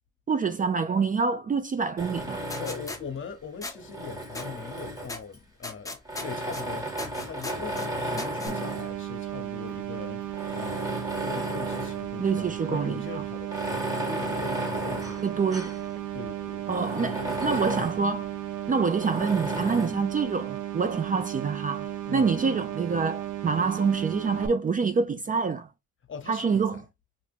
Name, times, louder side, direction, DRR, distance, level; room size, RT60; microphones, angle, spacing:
voice 1, 0.3-2.4 12.2-13.0 15.2-15.8 16.7-18.3 18.7-25.7 26.3-26.8, right 5 dB, 30° right, 0.4 m, -26 dB
Tools, 2.0-3.1 3.7-5.4 6.1-9.0 9.7-9.8 10.3-12.1 12.4-12.5 13.4-15.9 16.2-16.3 16.7-18.0 19.0-20.0, right 1 dB, 10° right, 1.1 m, -34 dB
voice 2, 2.5-6.9 7.2-10.2 10.5-15.3 16.1-17.9 22.0-22.3 26.1-26.8, left 6 dB, 40° left, 0.9 m, -41 dB
sound 1, 2.5-3.0 3.6-3.7 4.3-4.5 5.1-5.2 5.6-6.6 7.0-7.9 8.2-8.5, left 2 dB, 10° left, 0.9 m, -37 dB
sound 2, 8.5-24.5, right 12 dB, 85° right, 0.5 m, -35 dB
2.8 x 2.6 x 3.4 m
cardioid pair, 90°, 30 cm